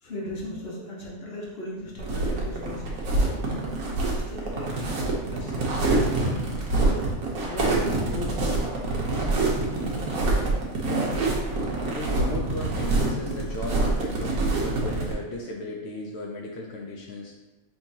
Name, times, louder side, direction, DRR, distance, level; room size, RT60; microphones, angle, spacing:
voice 1, 0.0-2.8 4.1-6.3 6.9-7.1 7.4-8.6, left 1 dB, 45° left, -4 dB, 1.1 m, -37 dB
sound 1, 2.0-15.1, right 2 dB, 70° right, 1.3 m, -26 dB
voice 2, 9.0-9.8 11.8-17.3, left 2 dB, 70° left, -2 dB, 0.6 m, -36 dB
5.6 x 3.0 x 2.7 m, 1.1 s
omnidirectional pair, 1.7 m